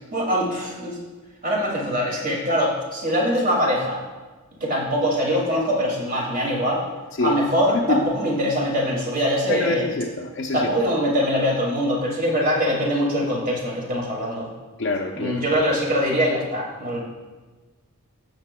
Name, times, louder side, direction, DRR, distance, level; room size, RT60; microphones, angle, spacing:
voice 1, 0.1-1.0 1.4-4.0 4.6-6.8 7.2-9.9 10.5-14.5 15.1-17.0, equal, 40° right, -3 dB, 2.2 m, -23 dB
voice 2, 7.7-8.1 9.5-10.7 14.8-15.6, left 3 dB, 50° left, 1 dB, 0.5 m, -26 dB
16.0 x 7.1 x 2.2 m, 1.3 s
head